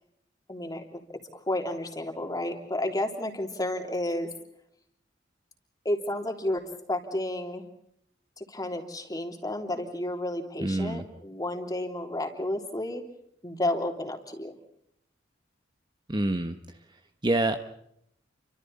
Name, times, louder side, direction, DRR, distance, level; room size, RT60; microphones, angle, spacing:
voice 1, 0.5-1.0 1.3-4.3 5.8-7.6 8.4-13.0 13.4-14.5, left 1 dB, 20° left, 3 dB, 3.3 m, -31 dB
voice 2, 10.6-11.0 16.1-16.6 17.2-17.6, right 2 dB, 25° right, 7 dB, 1.2 m, -26 dB
30.0 x 25.0 x 4.2 m, 0.72 s
head